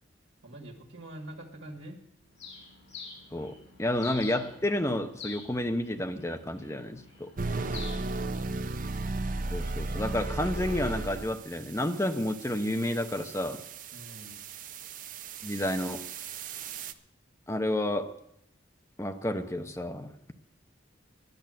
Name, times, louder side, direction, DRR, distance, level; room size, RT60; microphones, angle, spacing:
voice 1, 0.4-2.0 7.5-8.4 13.9-14.4, right 1 dB, 80° right, 1.9 m, -45 dB
Bird, 2.4-9.1, left 4 dB, 75° left, 5.9 m, -47 dB
voice 2, 3.3-7.3 9.5-13.6 15.4-16.1 17.5-18.2 19.0-20.1, left 1 dB, 15° left, 0.8 m, -30 dB
sound 1, 7.4-16.9, right 3 dB, 45° right, 0.7 m, -36 dB
11.0 x 10.5 x 7.6 m
head